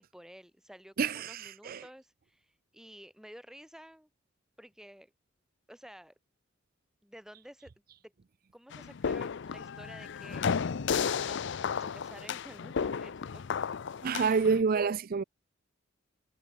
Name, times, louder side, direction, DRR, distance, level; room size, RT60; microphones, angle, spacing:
voice 1, 0.0-4.1 4.6-5.1 5.7-6.1 7.0-7.7 8.0-8.1 8.5-13.8, equal, 5° right, 7.9 m, -52 dB
voice 2, 1.0-1.8 14.0-15.2, right 5 dB, 45° right, 0.5 m, -28 dB
sound 1, 8.7-14.6, left 6 dB, 65° left, 0.5 m, -33 dB
head